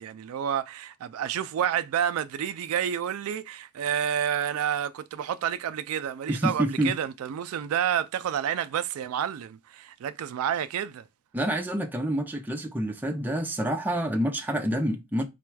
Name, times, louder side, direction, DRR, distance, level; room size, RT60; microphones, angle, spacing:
voice 1, 0.0-11.0, right 9 dB, 70° right, 0.3 m, -29 dB
voice 2, 6.3-6.9 11.3-15.2, equal, 10° right, 0.6 m, -27 dB
4.1 x 2.3 x 4.5 m
head